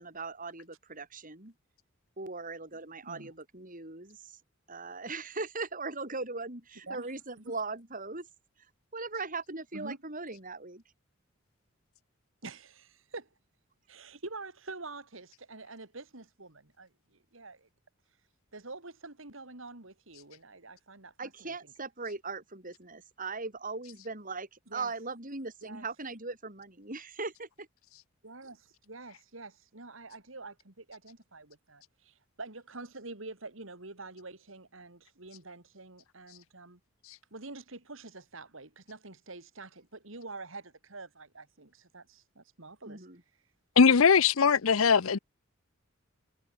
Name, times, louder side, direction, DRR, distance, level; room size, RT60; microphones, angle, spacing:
voice 1, 0.0-1.5 2.2-4.3 4.7-8.3 8.9-10.8 21.2-27.7 42.8-43.2, right 3 dB, 40° right, 8.0 m, -39 dB
voice 2, 3.0-3.3 6.9-7.1 7.4-7.5 9.7-10.0 12.4-13.3 13.9-16.9 17.3-17.7 18.5-21.5 24.7-24.9 25.6-25.8 28.2-36.8 37.3-43.1, right 3 dB, 70° right, 3.1 m, -46 dB
voice 3, 43.8-45.2, left 6 dB, 90° left, 0.7 m, -21 dB
head